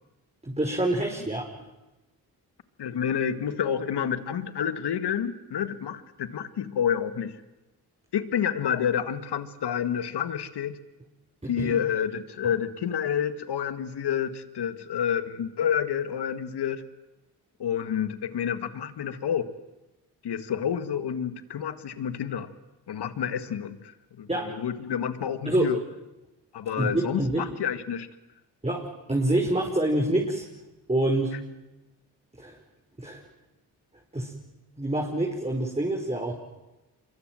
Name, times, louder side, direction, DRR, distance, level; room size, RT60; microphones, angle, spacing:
voice 1, 0.4-1.5 11.4-11.8 24.3-24.6 25.5-25.7 26.8-27.5 28.6-30.4 30.9-31.4 32.4-32.6 33.0-33.2 34.1-34.3 34.8-36.4, right 1 dB, 15° right, 0 dB, 5.3 m, -26 dB
voice 2, 2.8-7.4 8.1-10.8 11.5-16.8 17.6-19.5 20.2-22.5 22.9-25.8 26.5-28.1, left 8 dB, 70° left, 11 dB, 1.9 m, -29 dB
26.5 x 23.0 x 7.8 m, 1.0 s
supercardioid pair, 55°, 41 cm